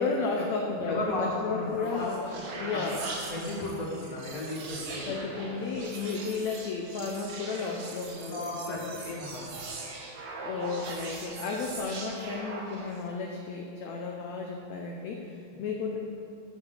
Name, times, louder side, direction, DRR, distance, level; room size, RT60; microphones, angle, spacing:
voice 1, 0.0-2.1 2.6-3.1 5.0-9.0 10.4-16.0, left 4 dB, 75° left, 0 dB, 1.7 m, -33 dB
voice 2, 0.8-2.4 2.7-2.8 3.3-5.2 8.3-9.7 15.5-15.6, left 1 dB, 35° left, -4 dB, 1.6 m, -35 dB
sound 1, 1.6-13.1, right 3 dB, 85° right, 1.0 m, -41 dB
8.3 x 6.1 x 7.3 m, 2.4 s
omnidirectional pair, 3.9 m